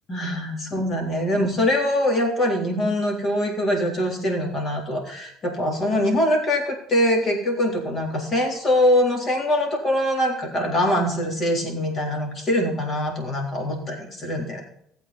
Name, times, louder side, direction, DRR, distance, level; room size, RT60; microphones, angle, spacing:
voice 1, 0.1-14.6, left 1 dB, 35° left, 1 dB, 3.8 m, -23 dB
15.5 x 8.2 x 4.2 m, 0.70 s
cardioid pair, 115°, 0 cm